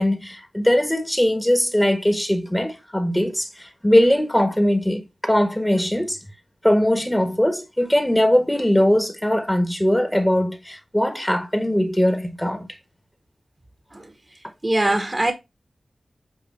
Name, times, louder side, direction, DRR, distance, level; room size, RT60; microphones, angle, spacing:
voice 1, 0.0-6.2 6.6-12.7, left 1 dB, 10° left, 1.4 m, -20 dB
voice 2, 14.6-15.3, right 1 dB, 30° right, 1.2 m, -21 dB
7.9 x 2.8 x 4.3 m
cardioid pair, 45°, 0 cm